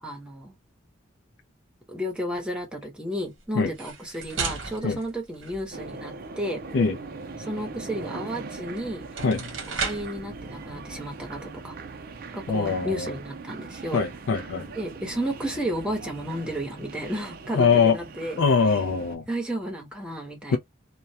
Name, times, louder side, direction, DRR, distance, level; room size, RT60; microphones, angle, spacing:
voice 1, 0.0-0.6 1.9-6.6 7.4-9.1 9.7-11.7 12.3-14.0 14.8-18.4 19.3-20.6, equal, 5° right, 0.8 m, -32 dB
sound 1, 3.6-6.0 8.5-8.6 9.0-10.2, right 5 dB, 75° right, 0.9 m, -34 dB
sound 2, 5.7-19.2, right 3 dB, 50° right, 0.5 m, -40 dB
voice 2, 12.5-13.1 13.9-14.7 17.5-18.0 18.4-19.2 20.5-20.6, left 5 dB, 70° left, 0.4 m, -22 dB
2.2 x 2.2 x 2.7 m
head